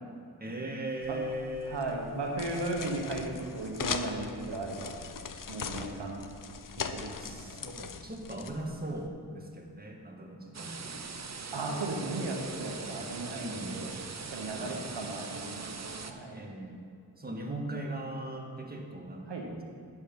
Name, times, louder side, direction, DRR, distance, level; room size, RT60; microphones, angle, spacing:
voice 1, 0.4-1.8 5.8-5.9 7.2-11.0 12.6-12.7 13.4-13.8 14.4-14.8 16.3-16.8 17.2-19.6, right 1 dB, 20° right, 1 dB, 1.7 m, -39 dB
sound 1, 1.0-9.1, left 6 dB, 50° left, 0.7 m, -40 dB
voice 2, 1.7-4.9 5.5-6.2 6.9-7.6 11.5-14.0 14.3-16.4 19.3-19.5, right 2 dB, 90° right, 1 dB, 1.3 m, -36 dB
sound 2, 10.5-16.1, right 4 dB, 40° right, 0.8 m, -41 dB
10.5 x 7.2 x 5.5 m, 2.3 s
cardioid pair, 50°, 41 cm